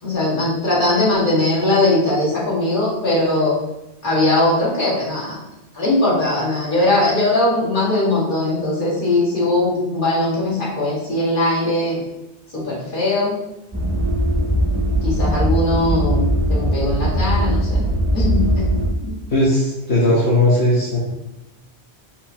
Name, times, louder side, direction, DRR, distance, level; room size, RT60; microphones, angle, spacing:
voice 1, 0.0-3.5 4.0-5.4 5.7-12.0 12.5-13.4 15.0-17.8 18.1-18.7 19.0-19.2, left 2 dB, 50° left, -7 dB, 1.8 m, -20 dB
sound 1, 13.7-18.9, equal, 25° right, 0.4 m, -19 dB
voice 2, 19.3-21.0, left 1 dB, 70° left, -7 dB, 1.2 m, -17 dB
5.3 x 3.4 x 2.7 m, 0.93 s
omnidirectional pair, 1.1 m